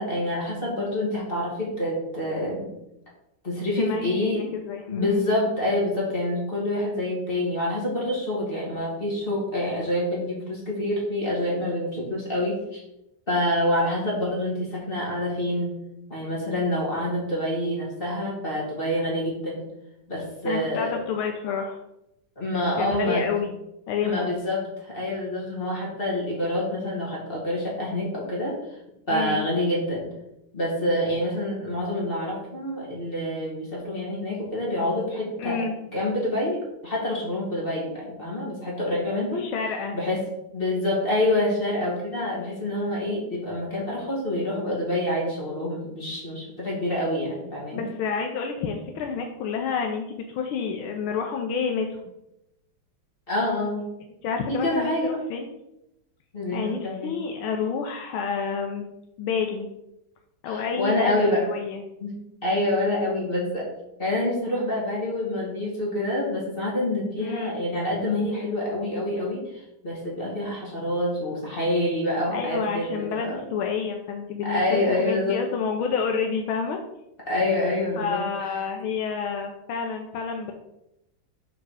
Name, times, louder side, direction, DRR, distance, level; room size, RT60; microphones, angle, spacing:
voice 1, 0.0-2.7 3.4-4.4 4.9-12.8 13.3-15.7 16.1-19.7 20.1-21.0 22.4-23.3 24.0-28.6 29.1-30.0 30.5-35.6 35.9-39.4 39.9-40.2 40.5-47.9 53.3-53.8 54.5-55.2 56.3-57.1 60.4-61.4 62.0-62.1 62.4-63.7 64.0-73.5 74.4-75.4 77.3-78.5, left 1 dB, 25° left, -5 dB, 2.5 m, -27 dB
voice 2, 3.8-5.2 20.4-21.8 22.8-23.6 23.9-24.3 29.1-29.4 35.4-35.7 39.4-40.0 47.7-52.0 54.2-55.5 56.5-58.8 59.2-59.7 60.4-61.8 67.2-67.5 72.3-76.8 78.0-80.5, left 6 dB, 80° left, 3 dB, 1.5 m, -29 dB
6.5 x 4.8 x 4.8 m, 0.86 s
omnidirectional pair, 2.2 m